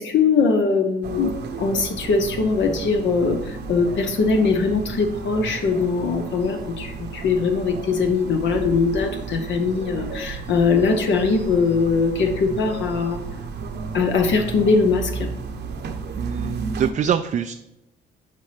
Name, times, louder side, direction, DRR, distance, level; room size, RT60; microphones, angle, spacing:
voice 1, 0.0-13.2 13.9-15.3, left 4 dB, 70° left, 4 dB, 0.9 m, -21 dB
sound 1, 1.0-16.9, right 5 dB, 60° right, 0.9 m, -33 dB
voice 2, 16.2-17.5, right 8 dB, 40° right, 8 dB, 0.4 m, -24 dB
11.0 x 4.1 x 3.3 m, 0.92 s
cardioid pair, 90°, 20 cm